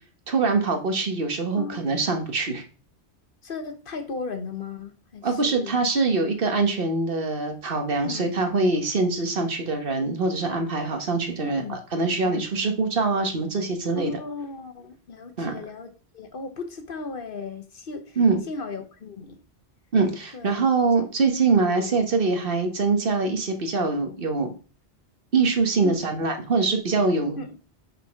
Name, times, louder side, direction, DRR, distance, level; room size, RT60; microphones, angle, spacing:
voice 1, 0.3-2.6 5.2-14.1 15.4-15.5 18.2-18.4 19.9-24.5 25.3-27.4, right 3 dB, 55° right, 4 dB, 1.4 m, -24 dB
voice 2, 3.4-5.8 8.0-8.3 11.4-11.7 12.2-12.4 13.9-18.2 18.5-19.4 20.3-20.6 21.0-21.1 21.8-21.9 25.8-26.0 27.4-27.5, left 4 dB, 50° left, 7 dB, 1.1 m, -36 dB
5.6 x 4.2 x 5.7 m, 0.37 s
omnidirectional pair, 1.2 m